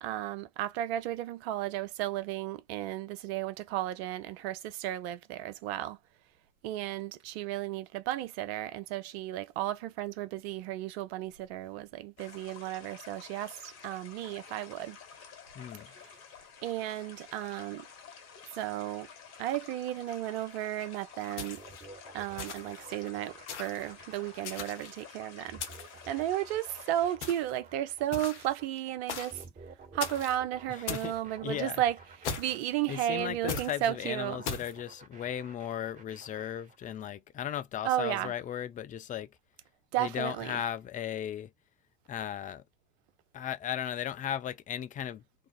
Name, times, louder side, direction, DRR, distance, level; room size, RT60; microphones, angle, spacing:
voice 1, 0.0-6.0 6.6-15.0 16.6-17.9 18.5-19.1 19.4-21.6 22.1-25.6 26.1-29.4 29.9-32.0 32.4-34.4 37.8-38.3 39.9-40.6, right 13 dB, 65° right, 0.6 m, -34 dB
sound 1, 12.2-27.2, left 6 dB, 50° left, 1.4 m, -51 dB
voice 2, 15.5-15.9 30.7-31.1 31.4-31.8 32.9-39.3 40.0-41.5 42.1-42.6 43.3-45.2, left 10 dB, 25° left, 0.3 m, -36 dB
sound 2, 21.4-21.8 22.4-22.8 23.5-23.8 24.4-25.0 25.6-26.0 27.2-27.6 28.1-28.5 29.1-29.4 30.0-30.4 30.9-31.1 32.2-32.7 33.5-33.7 34.4-34.7, left 6 dB, 80° left, 0.7 m, -38 dB
sound 3, 21.6-37.0, right 4 dB, 20° right, 1.5 m, -52 dB
2.6 x 2.3 x 2.3 m
hypercardioid pair, 70°, 34 cm